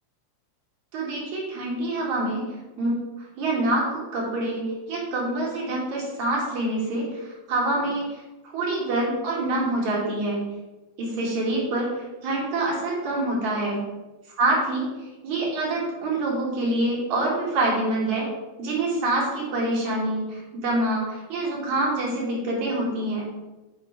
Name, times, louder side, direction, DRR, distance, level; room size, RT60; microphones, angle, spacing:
voice 1, 0.9-3.0 3.4-8.2 8.4-10.4 11.0-13.8 14.4-18.3 18.6-23.3, right 2 dB, 70° right, -3 dB, 3.8 m, -26 dB
7.5 x 6.3 x 5.6 m, 1.1 s
omnidirectional pair, 3.4 m